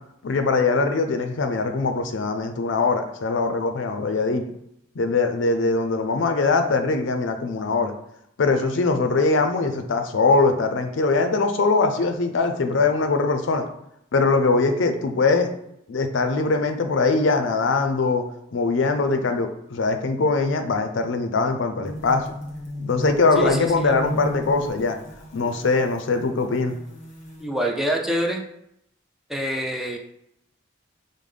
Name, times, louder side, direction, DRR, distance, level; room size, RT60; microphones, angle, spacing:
voice 1, 0.2-4.4 5.0-7.9 8.4-13.6 14.1-15.5 15.9-18.2 18.5-22.3 22.8-25.0 25.3-26.8, left 3 dB, 65° left, 7 dB, 0.5 m, -22 dB
sound 1, 21.8-27.5, equal, 40° left, 1.0 m, -36 dB
voice 2, 23.4-23.9 27.4-28.4 29.3-30.0, equal, ahead, 0 dB, 0.3 m, -26 dB
5.3 x 2.1 x 3.3 m, 0.77 s
head